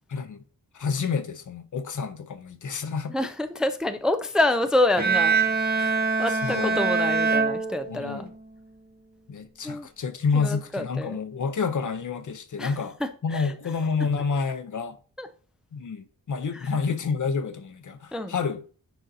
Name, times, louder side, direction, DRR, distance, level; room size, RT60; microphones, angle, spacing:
voice 1, 0.1-0.4 0.7-3.1 5.8-6.0 6.3-6.8 7.9-8.3 9.3-13.0 13.2-15.0 15.7-18.6, left 5 dB, 60° left, 0.7 m, -29 dB
voice 2, 3.1-5.4 6.2-8.3 9.6-9.9 10.3-11.2 12.6-12.7 13.0-13.5 15.2-15.3 18.1-18.3, left 1 dB, ahead, 0.4 m, -27 dB
Bowed string instrument, 5.0-8.3, right 5 dB, 30° right, 0.8 m, -24 dB
10.0 x 3.9 x 2.7 m
wide cardioid pair, 125°, 34 cm